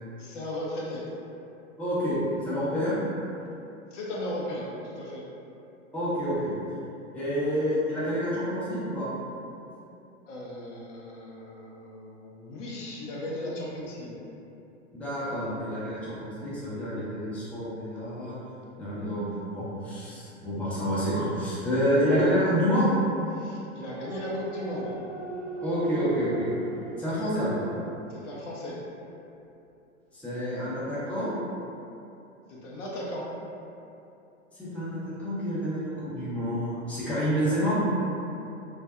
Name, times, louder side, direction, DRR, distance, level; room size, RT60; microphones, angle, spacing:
voice 1, 0.2-1.0 3.9-5.2 10.3-14.2 23.3-24.9 28.1-28.8 32.5-33.3, left 1 dB, 70° left, -4 dB, 0.7 m, -36 dB
voice 2, 1.8-2.9 5.9-6.5 7.1-9.1 14.9-18.4 18.8-19.3 19.5-22.9 25.6-26.5 27.0-27.6 30.1-31.3 34.6-37.8, equal, 5° left, -11 dB, 0.6 m, -28 dB
sound 1, 24.0-28.4 28.8-28.9, right 3 dB, 80° right, 0.6 m, -37 dB
2.5 x 2.3 x 2.3 m, 2.7 s
hypercardioid pair, 100°, 37 cm